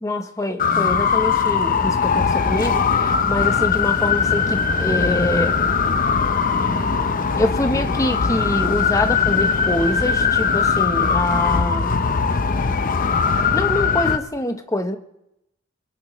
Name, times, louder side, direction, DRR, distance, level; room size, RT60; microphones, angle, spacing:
voice 1, 0.0-5.6 7.4-11.9 13.5-15.0, left 1 dB, 15° left, 7 dB, 0.9 m, -25 dB
sound 1, 0.6-14.2, left 5 dB, 40° left, 0.7 m, -20 dB
22.5 x 11.5 x 3.1 m, 0.83 s
head